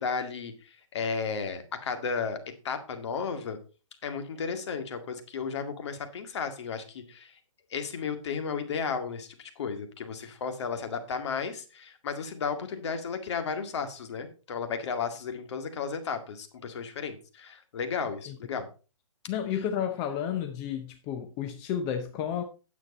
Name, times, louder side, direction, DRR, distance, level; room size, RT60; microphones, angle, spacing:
voice 1, 0.0-2.4 2.6-3.6 4.0-7.3 7.7-18.7 19.5-19.6, left 5 dB, 55° left, 2.0 m, -34 dB
voice 2, 19.3-22.4, left 9 dB, 20° left, 0.7 m, -31 dB
9.8 x 7.8 x 4.2 m
hypercardioid pair, 155°, 17 cm